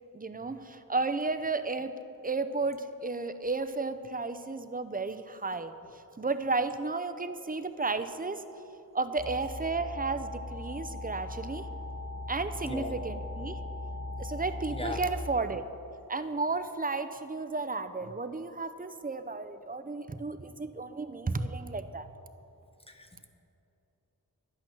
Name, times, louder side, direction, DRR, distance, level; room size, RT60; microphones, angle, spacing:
voice 1, 0.1-5.7 6.2-8.4 8.9-11.7 12.3-13.6 14.2-15.6 16.1-22.1, right 3 dB, 25° right, 11 dB, 0.6 m, -33 dB
sound 1, 9.2-15.1, left 2 dB, 75° left, 2.7 m, -39 dB
voice 2, 14.7-15.0 22.9-23.3, left 1 dB, 15° left, 4 dB, 1.2 m, -37 dB
11.0 x 8.9 x 6.0 m, 2.9 s
wide cardioid pair, 65°, 36 cm